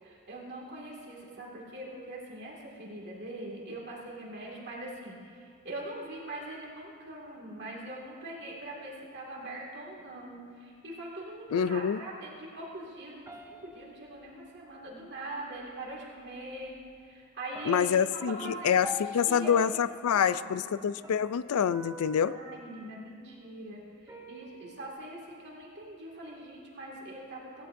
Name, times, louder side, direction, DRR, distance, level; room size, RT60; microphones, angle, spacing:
voice 1, 0.0-19.5 20.1-20.7 22.2-27.7, right 1 dB, 50° right, -3 dB, 2.2 m, -42 dB
voice 2, 11.5-12.0 17.7-22.3, left 7 dB, 75° left, 15 dB, 0.4 m, -26 dB
sound 1, 13.3-14.7 15.9-16.0 16.5-17.0 17.5-23.5 24.1-24.9, left 1 dB, 15° right, 0.8 m, -46 dB
16.5 x 16.5 x 2.6 m, 2.2 s
head